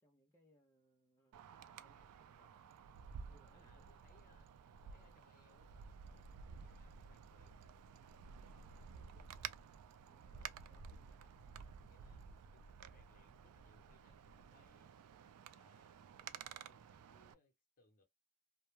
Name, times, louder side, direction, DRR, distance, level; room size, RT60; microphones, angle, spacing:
voice 1, 0.0-1.4 1.8-2.6 3.3-3.9 10.1-11.3 16.2-16.7, equal, 15° left, 0.4 m, -73 dB
Wind, 1.3-17.3, right 7 dB, 90° right, 0.3 m, -54 dB
voice 2, 3.5-4.5 4.8-7.8 8.3-9.5 10.3-10.6 10.9-14.9 15.5-16.0 16.5-18.0, left 2 dB, 40° left, 0.8 m, -73 dB
2.2 x 2.1 x 3.0 m
head